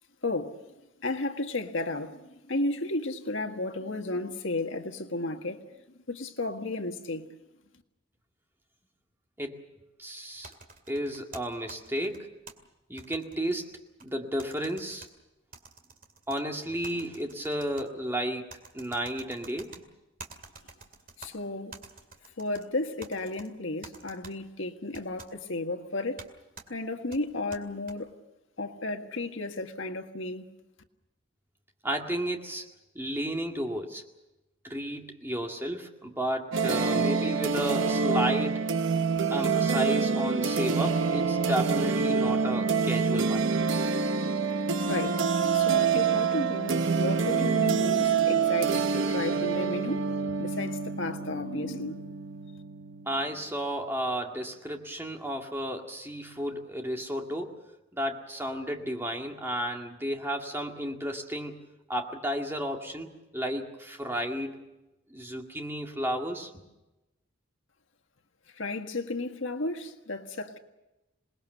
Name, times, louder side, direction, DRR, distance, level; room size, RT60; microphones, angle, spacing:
voice 1, 0.2-0.6 1.0-5.6 6.1-7.3 21.2-21.8 22.4-26.2 26.7-28.1 28.6-30.5 44.8-45.2 45.5-52.1 68.6-70.6, left 2 dB, 75° left, 1.7 m, -33 dB
voice 2, 10.0-10.5 10.9-12.3 12.9-13.7 14.0-15.1 16.3-18.5 18.7-19.7 31.8-32.7 33.0-34.0 34.6-38.7 39.3-43.5 53.1-57.6 57.9-61.6 61.9-63.1 63.3-64.7 65.1-66.5, equal, 10° right, 2.1 m, -32 dB
sound 1, 10.4-12.5 13.0-14.1 14.4-15.1 15.5-16.4 16.8-17.9 18.5-19.8 20.2-21.3 21.7-22.6 23.0-23.5 23.8-24.3 24.9-25.3 26.2-26.3 26.6-26.7 27.1-27.9, right 4 dB, 40° right, 2.3 m, -48 dB
sound 2, 36.5-53.1, right 5 dB, 75° right, 1.0 m, -26 dB
27.5 x 20.0 x 6.8 m
head